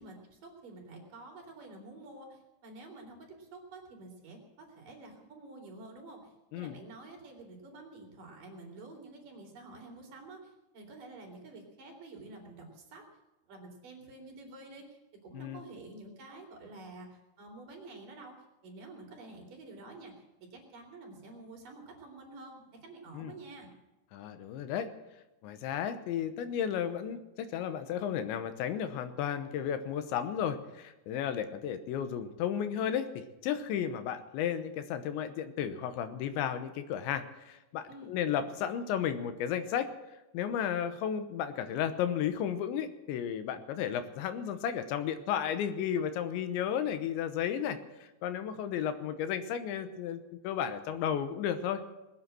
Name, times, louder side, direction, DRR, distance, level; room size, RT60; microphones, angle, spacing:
voice 1, 0.0-13.0 13.5-18.3 18.6-20.2 20.5-23.7 37.9-38.2, right 2 dB, 50° right, 1 dB, 4.1 m, -49 dB
voice 2, 24.1-24.9 25.4-39.9 40.3-51.8, left 9 dB, 85° left, 10 dB, 3.2 m, -33 dB
20.5 x 8.8 x 7.6 m, 1.0 s
omnidirectional pair, 5.3 m